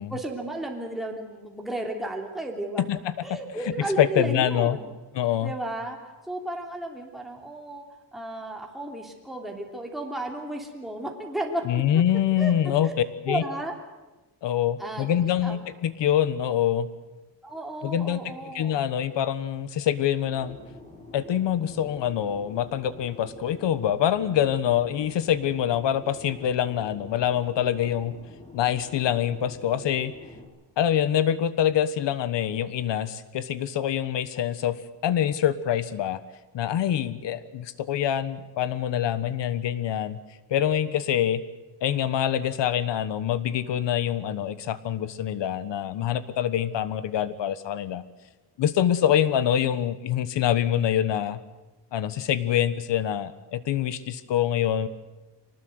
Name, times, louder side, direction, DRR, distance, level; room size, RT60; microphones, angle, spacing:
voice 1, 0.1-2.8 3.2-4.9 5.4-6.0 6.3-7.8 8.1-11.8 12.4-12.5 12.8-12.9 13.3-13.7 14.8-15.6 17.4-18.8, right 1 dB, ahead, 0 dB, 3.1 m, -33 dB
voice 2, 2.8-3.4 4.0-4.8 5.1-5.5 11.6-12.9 13.3-13.4 14.4-16.9 17.8-20.6 21.1-28.1 28.5-30.1 30.8-34.8 35.0-36.2 36.5-40.2 40.5-41.4 41.8-48.0 48.6-51.4 51.9-54.9, left 10 dB, 70° left, 14 dB, 1.4 m, -25 dB
Fixed-wing aircraft airplane, 20.3-30.4, left 2 dB, 15° left, 4.4 m, -47 dB
24.5 x 19.5 x 8.0 m, 1.1 s
cardioid pair, 135°, 44 cm